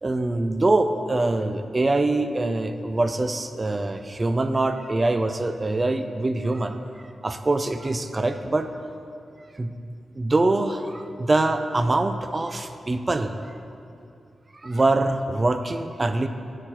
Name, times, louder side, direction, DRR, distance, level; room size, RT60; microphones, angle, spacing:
voice 1, 0.0-6.8 7.2-8.7 9.6-9.7 10.1-13.3 14.6-16.3, right 2 dB, 30° right, 9 dB, 0.3 m, -24 dB
7.3 x 5.0 x 4.6 m, 2.5 s
wide cardioid pair, 95°, 0 cm